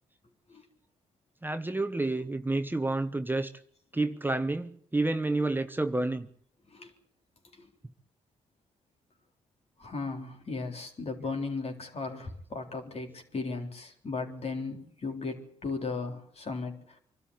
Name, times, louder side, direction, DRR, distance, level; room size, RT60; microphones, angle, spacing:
voice 1, 1.4-3.5 3.9-6.3, right 2 dB, 15° right, 1.1 m, -29 dB
voice 2, 9.8-17.0, left 3 dB, 50° left, 3.9 m, -36 dB
24.0 x 12.5 x 9.6 m
hypercardioid pair, 45°, 14 cm